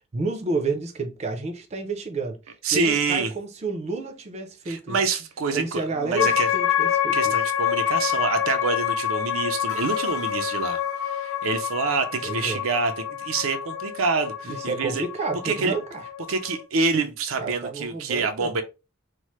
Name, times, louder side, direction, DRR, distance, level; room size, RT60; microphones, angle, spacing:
voice 1, 0.1-2.4 2.7-5.0 5.5-7.3 12.2-12.6 14.4-16.0 17.4-18.6, right 3 dB, 35° right, 0.4 m, -30 dB
voice 2, 2.6-3.3 4.7-6.5 7.1-15.0 15.4-15.7 16.3-18.6, right 4 dB, 85° right, 0.5 m, -26 dB
sound 1, 6.2-16.6, left 10 dB, 75° left, 0.5 m, -27 dB
3.1 x 2.0 x 3.0 m
head